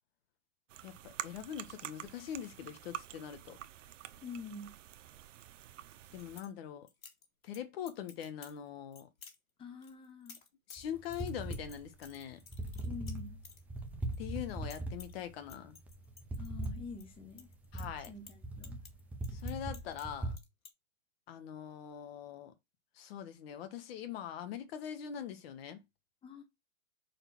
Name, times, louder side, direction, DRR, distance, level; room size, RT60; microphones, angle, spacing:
sound 1, 0.7-6.4, right 11 dB, 65° right, 0.8 m, -47 dB
voice 1, 0.8-3.6 6.1-6.9 7.4-9.1 10.7-12.4 14.2-15.8 17.7-18.1 19.3-20.4 21.3-22.5 22.9-25.8, left 9 dB, 45° left, 1.4 m, -43 dB
voice 2, 4.1-4.7 9.6-10.4 12.8-13.4 16.4-17.5 18.1-18.8 26.2-26.4, left 4 dB, 15° left, 1.1 m, -47 dB
sound 2, 5.9-6.5 6.9-7.6 7.9-8.6 8.9-9.4 9.8-14.2 14.4-15.2 15.5-17.0 17.3-20.1 20.3-20.7, left 5 dB, 85° left, 2.1 m, -54 dB
sound 3, 10.8-20.4, right 1 dB, 5° right, 0.4 m, -41 dB
5.0 x 4.4 x 6.0 m
hypercardioid pair, 135°, 41 cm